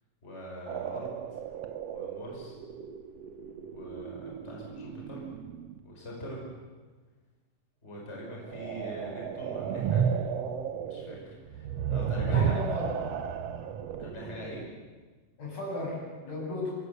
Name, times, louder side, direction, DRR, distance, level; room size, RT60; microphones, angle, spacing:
voice 1, 0.2-1.4 1.9-2.6 3.7-5.2 5.8-6.5 7.8-10.2 10.9-12.6 14.0-14.6, equal, 15° left, -2 dB, 5.8 m, -43 dB
sound 1, 0.7-5.8 8.3-14.7, right 7 dB, 60° right, 1.7 m, -33 dB
voice 2, 12.2-12.9 15.4-16.8, left 1 dB, 55° left, -3 dB, 9.3 m, -35 dB
25.0 x 21.5 x 8.1 m, 1.4 s
omnidirectional pair, 4.0 m